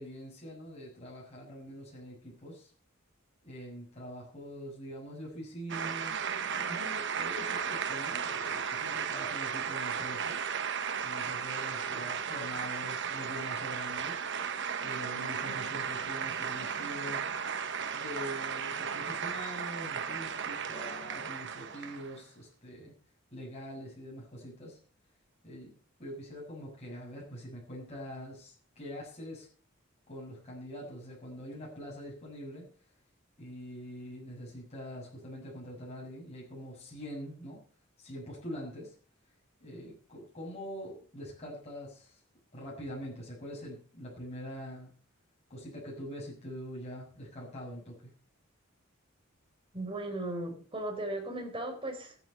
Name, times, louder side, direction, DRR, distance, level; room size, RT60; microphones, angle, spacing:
voice 1, 0.0-2.7 3.4-6.3 6.5-10.5 11.0-14.2 14.8-17.2 17.9-22.9 23.3-24.8 25.4-25.7 26.0-29.5 30.1-32.7 33.4-37.6 38.0-38.9 39.6-42.2 42.5-44.9 45.5-48.1, equal, 30° left, -5 dB, 7.0 m, -44 dB
sound 1, 5.7-22.2, right 7 dB, 60° right, 1.2 m, -35 dB
voice 2, 49.7-52.2, right 1 dB, 25° right, 2 dB, 4.2 m, -36 dB
14.5 x 9.6 x 6.7 m, 0.42 s
head